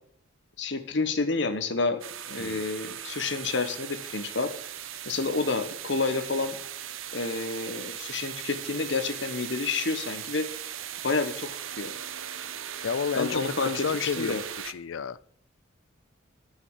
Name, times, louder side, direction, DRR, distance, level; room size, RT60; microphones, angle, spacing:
voice 1, 0.6-2.0 2.3-4.5 5.1-6.6 7.1-10.5 11.0-11.5 11.8-11.9 13.2-14.4, left 3 dB, 60° left, 9 dB, 1.1 m, -29 dB
sound 1, 2.0-14.7, right 10 dB, 80° right, 0.7 m, -38 dB
voice 2, 12.8-15.2, left 6 dB, 75° left, 18 dB, 0.4 m, -31 dB
9.7 x 5.6 x 7.3 m, 0.66 s
head